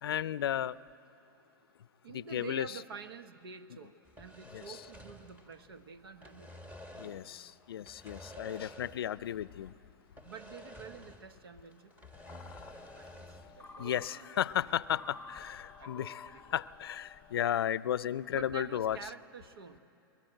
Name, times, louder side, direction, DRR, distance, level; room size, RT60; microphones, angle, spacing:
voice 1, 0.0-0.8 2.1-2.7 4.5-4.8 7.0-9.7 13.8-16.2 16.5-19.0, left 10 dB, 85° left, 19 dB, 0.5 m, -34 dB
voice 2, 2.0-6.6 10.2-11.9 13.0-14.4 15.8-16.4 18.3-19.8, right 5 dB, 85° right, 11 dB, 1.1 m, -48 dB
sound 1, 4.1-5.8 6.1-7.3 7.8-9.2 9.5-9.6 10.2-11.4 11.7-13.6, left 1 dB, 10° right, 1.6 m, -51 dB
sound 2, 12.1-17.4, left 4 dB, 15° left, 1.0 m, -52 dB
22.0 x 21.0 x 9.0 m, 2.8 s
hypercardioid pair, 125°, 12 cm